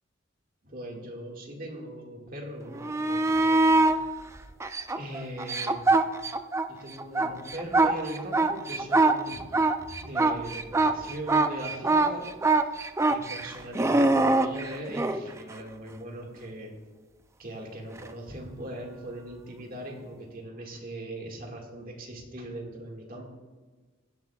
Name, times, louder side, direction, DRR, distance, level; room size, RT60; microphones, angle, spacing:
voice 1, 0.6-3.9 4.9-5.8 6.7-12.3 12.6-16.7 17.4-23.2, right 1 dB, 45° right, 0 dB, 1.8 m, -40 dB
sound 1, 2.7-4.0 4.6-6.7 7.0-15.2 18.0-18.1, right 2 dB, 15° right, 0.3 m, -23 dB
16.5 x 10.5 x 2.3 m, 1.3 s
head